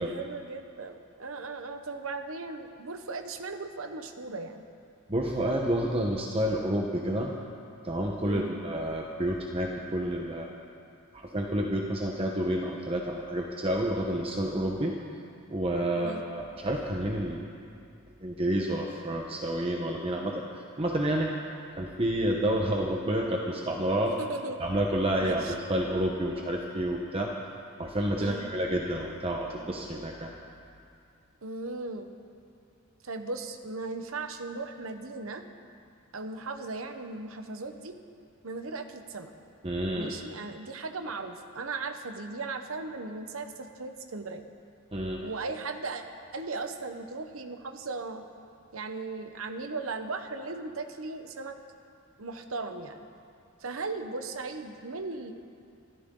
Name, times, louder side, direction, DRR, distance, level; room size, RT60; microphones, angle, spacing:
voice 1, 0.0-4.6 8.2-8.5 16.0-16.2 24.2-24.6 25.2-25.5 28.2-28.5 31.4-32.1 33.0-35.4 36.1-37.9 38.4-39.3 39.9-44.4 45.2-46.0 46.3-48.2 48.7-51.6 52.2-53.0 53.6-55.3, right 3 dB, 80° right, 7 dB, 1.1 m, -37 dB
voice 2, 5.1-7.3 7.8-10.6 11.1-15.0 15.5-17.5 18.2-21.3 21.8-24.2 24.6-27.3 27.8-30.3 39.6-40.1 44.9-45.2, right 1 dB, 30° right, 0 dB, 1.0 m, -29 dB
25.5 x 14.5 x 3.9 m, 2.4 s
head